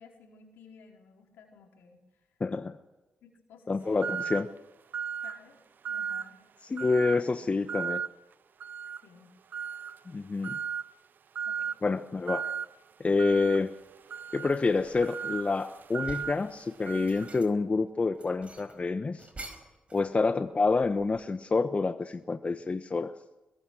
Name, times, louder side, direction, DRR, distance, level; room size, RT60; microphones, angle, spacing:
voice 1, 0.0-2.0 3.2-4.2 5.2-5.6 5.8-6.4 7.0-7.5 9.0-9.3 11.5-11.7, left 5 dB, 80° left, 1 dB, 4.7 m, -54 dB
voice 2, 2.4-2.8 3.7-4.5 6.7-8.0 10.1-10.5 11.8-12.4 13.0-13.7 14.3-19.3 19.9-23.1, left 3 dB, 35° left, 9 dB, 1.1 m, -28 dB
sound 1, 4.0-4.5 4.9-5.4 5.8-6.3 6.8-7.2 7.7-8.1 8.6-9.0 9.5-10.0 10.4-10.9 11.3-11.8 12.3-12.7 13.2-17.4, right 7 dB, 60° right, 0.7 m, -36 dB
sound 2, 13.7-13.9 14.4-15.4 15.8-16.4 16.9-17.7 18.1-20.1 20.4-21.4, right 2 dB, 35° right, 4.7 m, -48 dB
22.0 x 22.0 x 6.4 m, 1.1 s
supercardioid pair, 45°, 4 cm